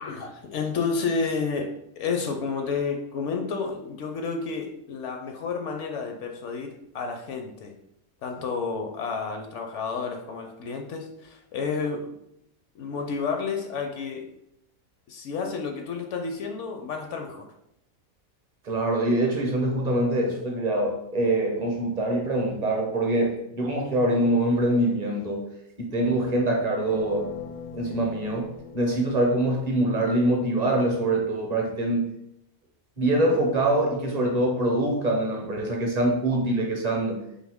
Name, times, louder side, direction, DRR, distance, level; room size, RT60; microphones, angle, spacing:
voice 1, 0.0-7.8 8.2-12.1 12.7-14.3 15.1-17.5, left 5 dB, 65° left, 4 dB, 0.8 m, -31 dB
voice 2, 18.6-25.5 25.8-27.3 27.7-28.5 28.7-32.1 33.0-37.2, right 1 dB, 40° right, 1 dB, 0.7 m, -24 dB
sound 1, 26.9-29.9, left 6 dB, 85° left, 1.1 m, -42 dB
4.1 x 2.7 x 3.5 m, 0.78 s
omnidirectional pair, 1.5 m